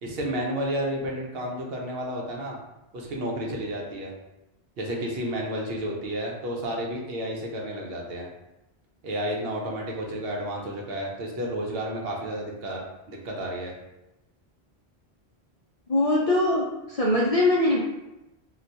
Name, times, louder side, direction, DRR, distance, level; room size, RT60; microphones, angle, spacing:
voice 1, 0.0-2.6 2.9-4.1 4.8-8.3 9.0-13.7, equal, 70° right, -1 dB, 0.8 m, -31 dB
voice 2, 15.9-17.8, left 1 dB, 55° left, -5 dB, 0.4 m, -22 dB
2.4 x 2.2 x 3.9 m, 0.96 s
omnidirectional pair, 1.1 m